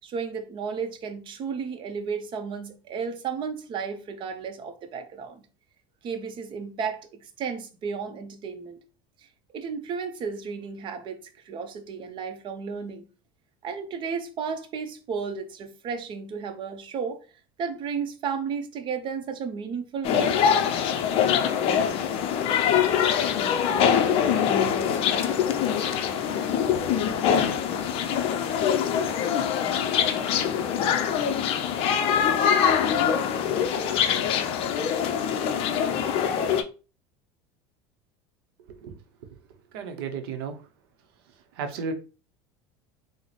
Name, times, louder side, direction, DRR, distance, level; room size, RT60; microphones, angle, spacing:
voice 1, 0.0-5.4 6.0-8.8 9.5-11.2 11.4-13.0 13.6-17.2 17.6-20.3, right 6 dB, 40° right, 0.7 m, -33 dB
sound 1, 20.0-36.6, left 8 dB, 50° left, 0.5 m, -24 dB
voice 2, 39.7-40.5 41.6-41.9, right 5 dB, 80° right, 0.7 m, -32 dB
3.8 x 2.0 x 3.2 m
supercardioid pair, 115°, 12 cm